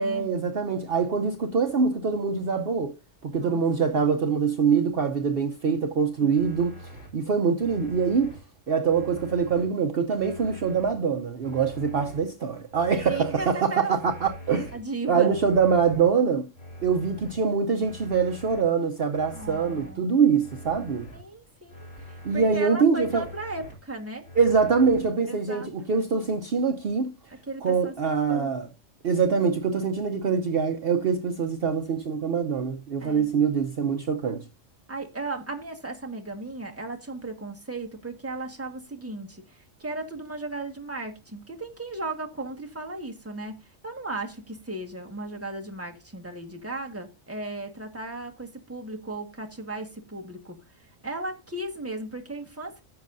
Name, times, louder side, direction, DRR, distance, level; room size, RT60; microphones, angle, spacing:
voice 1, 0.0-2.9 3.2-8.4 8.7-14.7 15.1-16.5 16.8-21.1 22.2-23.2 24.4-27.1 27.6-28.7 29.0-34.4, right 6 dB, 55° right, 1.0 m, -24 dB
sound 1, 6.3-7.1 7.6-8.4 8.9-9.6 10.1-10.9 11.4-12.2 12.7-13.5 14.0-14.8 15.3-16.0 16.5-17.3 17.8-18.6 19.1-19.9 20.4-21.2 21.7-22.5 23.0-23.7 24.2-25.0, equal, 80° left, 4.0 m, -43 dB
voice 2, 13.0-13.9 14.7-15.3 19.3-20.1 21.1-24.3 25.3-25.7 27.5-27.9 28.3-28.5 33.0-33.3 34.9-50.6 51.0-52.8, right 2 dB, 10° right, 1.5 m, -36 dB
15.5 x 6.3 x 2.6 m
omnidirectional pair, 1.3 m